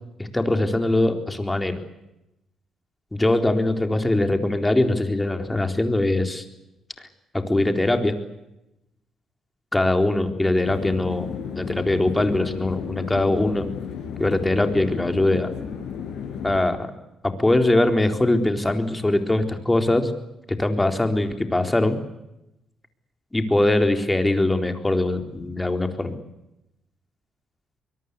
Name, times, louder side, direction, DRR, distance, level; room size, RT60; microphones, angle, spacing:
voice 1, 0.3-1.8 3.1-6.4 7.3-8.2 9.7-13.7 14.2-15.5 16.4-16.9 17.2-20.1 20.5-22.0 23.3-26.1, left 2 dB, 15° left, 6 dB, 3.9 m, -22 dB
sound 1, 10.6-16.6, left 7 dB, 80° left, 6.0 m, -33 dB
24.0 x 22.5 x 8.3 m, 0.89 s
cardioid pair, 90°, 0 cm